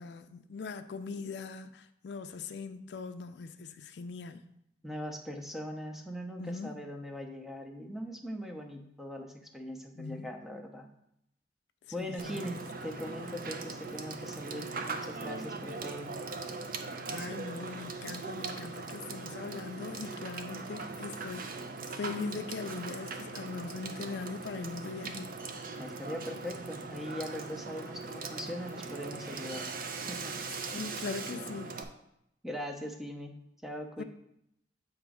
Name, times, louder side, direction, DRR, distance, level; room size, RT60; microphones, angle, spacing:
voice 1, 0.0-4.4 6.4-6.7 10.0-10.3 11.9-12.6 13.2-13.4 17.1-21.5 21.9-25.4 30.7-31.8 34.0-34.1, left 4 dB, 65° left, 0.4 m, -40 dB
voice 2, 4.8-10.9 11.9-12.5 12.8-16.2 25.8-29.7 30.1-30.4 32.4-34.0, equal, ahead, 0.6 m, -41 dB
Water / Water tap faucet / Sink (filling or washing), 12.2-31.8, right 4 dB, 50° right, 0.6 m, -40 dB
7.9 x 3.0 x 4.9 m
head